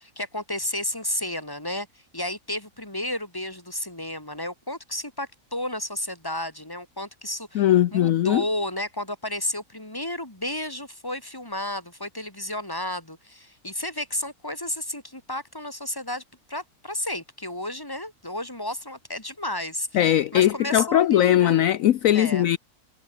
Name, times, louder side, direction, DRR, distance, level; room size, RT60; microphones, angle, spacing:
voice 1, 0.0-1.9 2.1-7.6 7.9-16.2 16.5-20.0 20.3-21.6 22.1-22.5, left 1 dB, 15° left, 4.0 m, -32 dB
voice 2, 7.5-8.4 19.9-22.6, left 12 dB, 70° left, 1.1 m, -20 dB
omnidirectional pair, 1.6 m